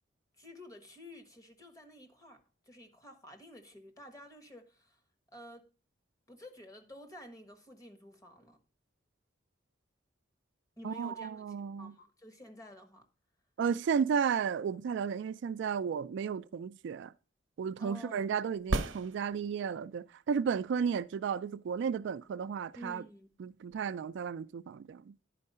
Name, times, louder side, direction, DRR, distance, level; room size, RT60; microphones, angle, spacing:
voice 1, 0.4-2.4 2.7-5.0 5.3-5.7 6.3-8.6 10.8-13.0 17.8-18.3 22.7-23.3, equal, 20° left, 1.3 m, -51 dB
voice 2, 10.8-11.9 13.6-17.1 17.6-23.0 23.4-25.2, right 6 dB, 65° right, 0.3 m, -33 dB
sound 1, 18.6-19.8 23.7-23.8, right 2 dB, 80° right, 0.9 m, -34 dB
10.5 x 4.7 x 5.4 m
head